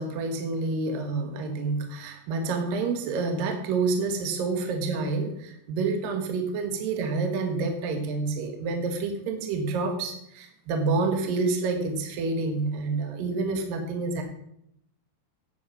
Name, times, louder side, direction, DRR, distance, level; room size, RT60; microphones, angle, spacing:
voice 1, 0.0-14.2, right 3 dB, 60° right, 4 dB, 2.6 m, -28 dB
10.0 x 8.5 x 5.5 m, 0.75 s
omnidirectional pair, 5.6 m